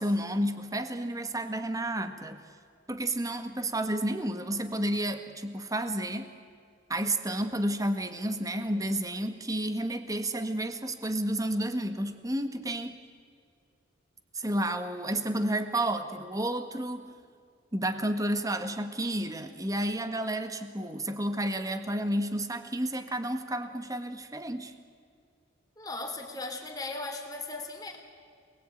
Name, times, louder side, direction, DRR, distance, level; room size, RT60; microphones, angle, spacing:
voice 1, 0.0-2.4 2.9-6.3 6.9-13.0 14.3-17.1 17.7-24.7, right 1 dB, 20° right, 8 dB, 1.6 m, -31 dB
voice 2, 25.8-28.0, left 2 dB, 20° left, 3 dB, 3.3 m, -37 dB
27.5 x 20.5 x 9.2 m, 2.2 s
head